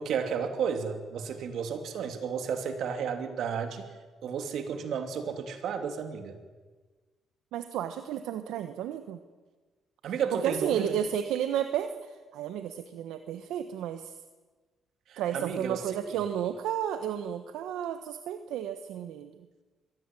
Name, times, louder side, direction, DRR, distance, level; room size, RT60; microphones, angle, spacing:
voice 1, 0.0-3.9 4.2-6.4 10.0-11.0 15.1-16.2, right 6 dB, 75° right, 7 dB, 2.9 m, -32 dB
voice 2, 7.5-9.2 10.3-14.2 15.2-19.3, right 10 dB, 90° right, 9 dB, 1.1 m, -32 dB
23.0 x 17.0 x 9.1 m, 1.3 s
cardioid pair, 90°, 0 cm